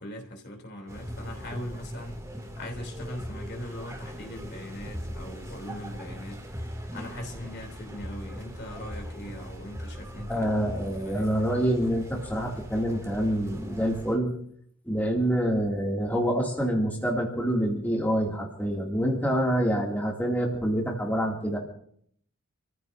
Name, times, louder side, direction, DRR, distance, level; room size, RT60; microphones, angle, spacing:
voice 1, 0.0-6.4 6.9-10.5 11.0-11.3, left 1 dB, 50° left, 3.2 m, -40 dB
sound 1, 0.9-14.2, equal, 15° right, 2.5 m, -39 dB
voice 2, 10.3-14.3 14.9-21.6, equal, 10° left, 2.5 m, -26 dB
28.5 x 15.0 x 2.7 m
head